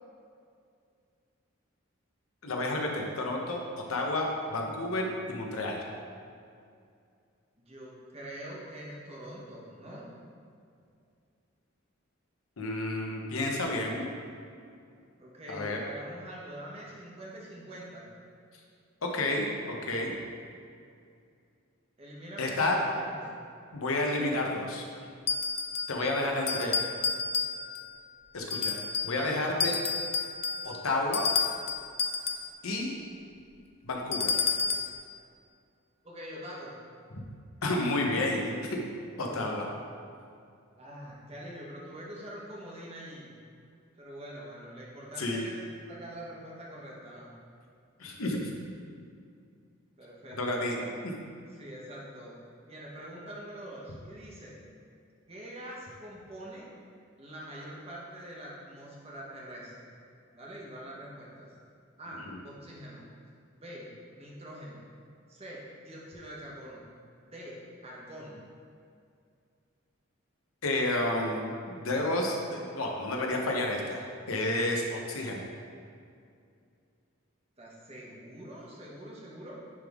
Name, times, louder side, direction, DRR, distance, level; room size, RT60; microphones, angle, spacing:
voice 1, 2.4-3.6 3.9-5.8 12.6-14.0 15.5-15.8 19.0-20.1 22.4-22.8 23.7-24.8 25.9-26.7 28.3-29.8 30.6-31.3 32.6-32.9 33.8-34.3 37.1-37.2 37.6-38.8 39.2-39.7 45.2-45.4 48.0-48.5 50.4-50.8 62.3-62.4 70.6-75.4, left 2 dB, 85° left, 0 dB, 0.9 m, -30 dB
voice 2, 7.6-10.1 15.2-18.1 22.0-23.2 36.0-36.7 39.0-39.5 40.8-43.3 44.0-47.3 50.0-50.9 51.5-52.3 52.7-54.5 55.3-56.7 57.2-59.9 60.3-61.5 62.0-63.0 63.5-64.8 65.3-66.8 67.2-68.4 77.6-79.6, right 1 dB, 30° right, -4 dB, 1.1 m, -44 dB
sound 1, 25.3-26.0 26.5-27.9 28.5-29.2 29.6-32.5 34.1-35.0, left 5 dB, 30° left, 0.3 m, -30 dB
9.6 x 3.6 x 3.5 m, 2.4 s
head